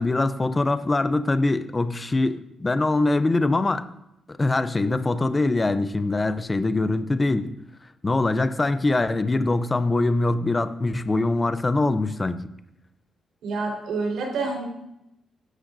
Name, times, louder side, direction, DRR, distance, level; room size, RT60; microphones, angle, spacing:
voice 1, 0.0-3.8 4.3-7.6 8.0-12.4, left 2 dB, 15° left, 11 dB, 0.5 m, -23 dB
voice 2, 13.4-14.7, right 3 dB, 80° right, -1 dB, 4.1 m, -27 dB
16.5 x 11.5 x 2.6 m, 0.84 s
cardioid pair, 165°, 0 cm